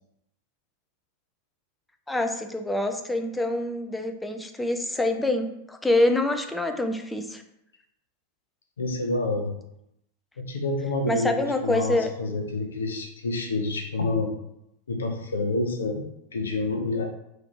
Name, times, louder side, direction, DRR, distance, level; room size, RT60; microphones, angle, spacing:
voice 1, 2.1-7.4 11.1-12.1, left 2 dB, 5° left, 6 dB, 0.3 m, -26 dB
voice 2, 8.8-9.5 10.4-11.3 11.6-14.3 14.9-17.0, left 2 dB, 70° left, 3 dB, 0.5 m, -28 dB
2.7 x 2.3 x 3.6 m, 0.81 s
figure-of-eight pair, 90°, 0 cm